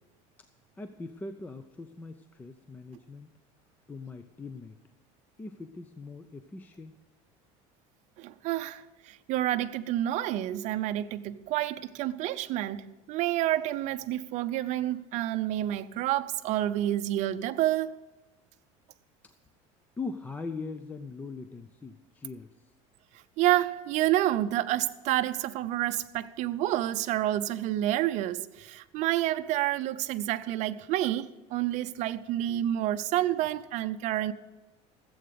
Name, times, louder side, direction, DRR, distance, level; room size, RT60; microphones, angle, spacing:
voice 1, 0.8-3.3 3.9-4.8 5.4-6.9 20.0-22.5, left 3 dB, 10° left, 0.4 m, -41 dB
voice 2, 8.2-17.9 23.4-34.3, right 13 dB, 50° right, 0.6 m, -29 dB
14.5 x 7.9 x 6.8 m
cardioid pair, 155°, 16 cm